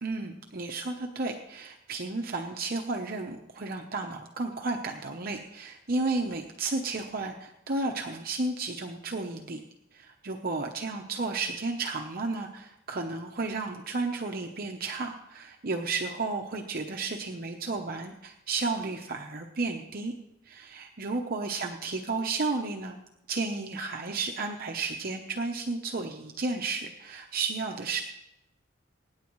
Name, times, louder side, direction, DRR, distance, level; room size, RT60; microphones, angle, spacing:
voice 1, 0.0-9.6 9.9-20.2 20.5-23.0 23.3-28.0, right 3 dB, 50° right, 3 dB, 0.8 m, -33 dB
24.0 x 9.6 x 3.1 m, 0.89 s
head